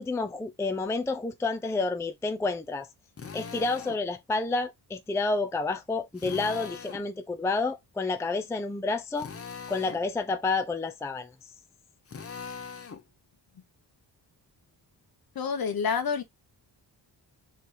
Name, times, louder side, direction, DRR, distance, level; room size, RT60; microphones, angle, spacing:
voice 1, 0.0-2.9 3.3-9.3 9.7-11.3, left 3 dB, 5° left, 0.4 m, -29 dB
Drill, 3.2-4.0 6.2-7.1 9.1-10.0 12.1-13.0, left 5 dB, 35° left, 0.8 m, -41 dB
voice 2, 15.3-16.2, left 6 dB, 55° left, 1.0 m, -28 dB
3.5 x 3.3 x 4.1 m
wide cardioid pair, 115°, 42 cm